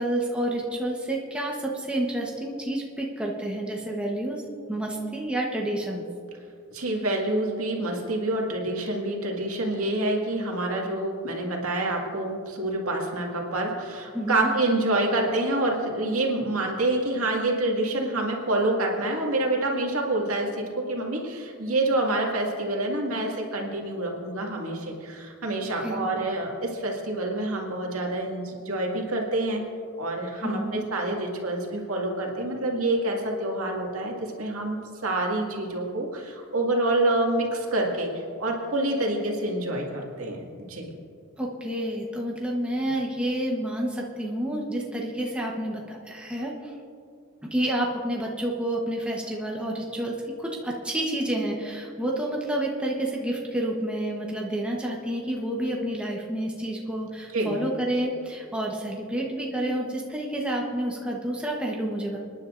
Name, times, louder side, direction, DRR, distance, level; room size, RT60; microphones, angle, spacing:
voice 1, 0.0-4.4 4.7-6.0 14.1-14.5 25.6-26.1 30.4-30.8 41.4-46.7 47.4-62.2, right 1 dB, 5° right, -2 dB, 1.0 m, -29 dB
voice 2, 6.7-29.6 30.0-38.1 38.4-40.4 40.7-40.9 57.3-57.6, right 2 dB, 90° right, -1 dB, 2.1 m, -27 dB
27.0 x 10.5 x 2.6 m, 2.4 s
head